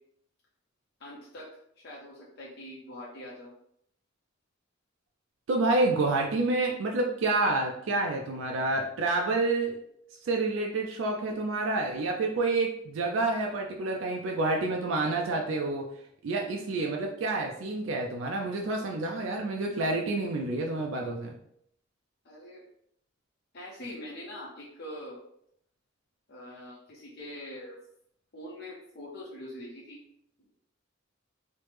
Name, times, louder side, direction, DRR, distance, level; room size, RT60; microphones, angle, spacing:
voice 1, 1.0-1.5 1.8-3.5 22.2-22.6 23.5-25.2 26.3-27.7 28.3-30.0 30.4-30.5, left 1 dB, 55° left, -5 dB, 0.6 m, -43 dB
voice 2, 5.5-9.8 10.2-15.8 16.2-21.3, right 2 dB, 65° right, 1 dB, 0.4 m, -28 dB
3.1 x 2.0 x 3.1 m, 0.71 s
head